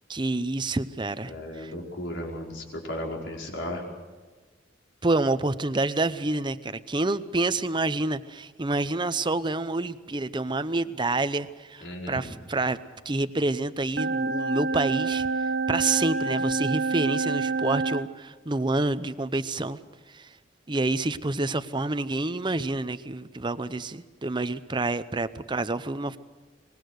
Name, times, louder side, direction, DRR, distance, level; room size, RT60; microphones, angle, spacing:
voice 1, 0.1-1.7 5.0-12.8 13.1-15.3 15.7-19.8 20.1-20.3 20.7-26.2, right 2 dB, 25° right, 13 dB, 0.7 m, -28 dB
voice 2, 1.3-3.8 11.8-12.3, left 1 dB, 80° left, -1 dB, 5.0 m, -35 dB
sound 1, 14.0-18.1, right 3 dB, 60° right, 0.8 m, -27 dB
24.0 x 20.5 x 6.5 m, 1.3 s
head